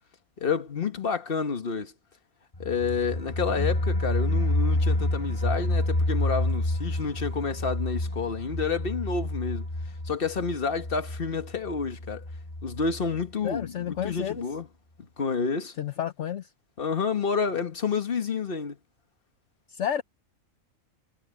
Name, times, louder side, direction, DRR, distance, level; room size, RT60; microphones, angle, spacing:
voice 1, 0.4-1.9 2.6-9.7 10.0-12.2 12.6-14.7 15.2-15.7 16.8-18.8, left 5 dB, 45° left, 1.6 m, -29 dB
sound 1, 2.5-13.2 13.6-13.7 14.0-14.1, left 1 dB, 25° left, 3.2 m, -29 dB
voice 2, 13.4-14.4 15.8-16.5 19.7-20.0, left 9 dB, 65° left, 1.1 m, -31 dB
omnidirectional pair, 1.4 m